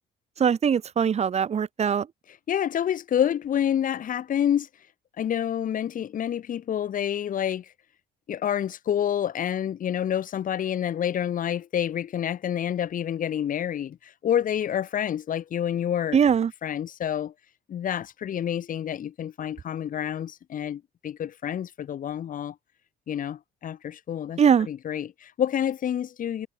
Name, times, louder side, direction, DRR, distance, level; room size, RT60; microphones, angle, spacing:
voice 1, 0.4-2.1 16.1-16.5 24.4-24.7, right 7 dB, 40° right, 2.2 m, -21 dB
voice 2, 2.5-4.7 5.2-7.7 8.3-16.2 16.6-17.3 17.7-22.5 23.1-24.4 24.7-26.5, left 9 dB, 55° left, 6.5 m, -28 dB
cardioid pair, 110°, 17 cm